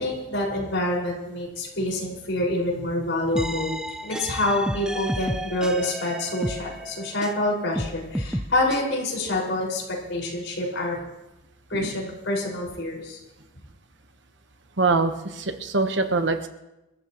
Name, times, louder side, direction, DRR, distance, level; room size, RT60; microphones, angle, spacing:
voice 1, 0.0-3.7 4.0-9.8 10.1-11.0 11.7-13.2, left 1 dB, 65° left, -2 dB, 5.6 m, -27 dB
sound 1, 3.4-7.4 7.8-8.8, equal, 5° right, 0.6 m, -31 dB
voice 2, 14.8-16.5, right 3 dB, 60° right, 7 dB, 1.1 m, -24 dB
27.5 x 14.5 x 3.1 m, 0.97 s
head